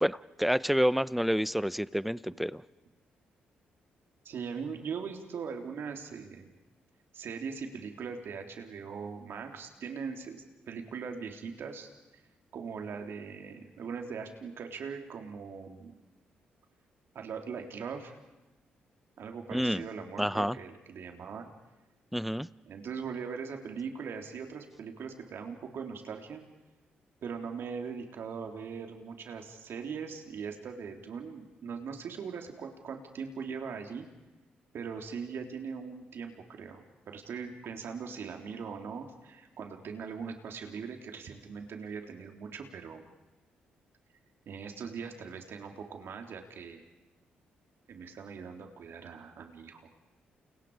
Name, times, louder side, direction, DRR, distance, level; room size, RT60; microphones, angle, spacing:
voice 1, 0.0-2.5 19.5-19.9 20.2-20.6 22.1-22.5, equal, ahead, 18 dB, 0.8 m, -28 dB
voice 2, 4.2-6.5 7.1-11.9 12.5-15.9 17.1-18.2 19.2-21.5 22.7-26.4 27.2-34.1 34.7-43.1 44.5-46.8 47.9-49.9, right 6 dB, 65° right, 3 dB, 3.8 m, -40 dB
29.5 x 29.5 x 5.1 m, 1.1 s
hypercardioid pair, 45°, 4 cm